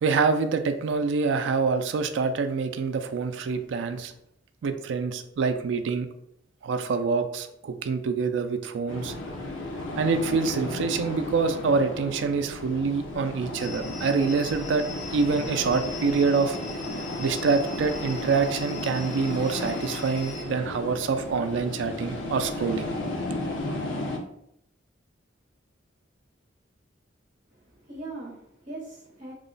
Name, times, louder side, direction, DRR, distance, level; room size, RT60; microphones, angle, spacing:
voice 1, 0.0-4.1 4.6-6.1 6.6-9.1 10.0-14.8 15.1-16.6 17.2-22.9, right 4 dB, 75° right, 8 dB, 0.3 m, -26 dB
sound 1, 8.9-24.2, left 2 dB, 85° left, 0.5 m, -34 dB
sound 2, 13.5-20.4, left 4 dB, 35° left, 0.8 m, -42 dB
voice 2, 27.5-29.3, right 2 dB, 40° right, -4 dB, 0.8 m, -41 dB
3.0 x 2.0 x 3.8 m, 0.76 s
head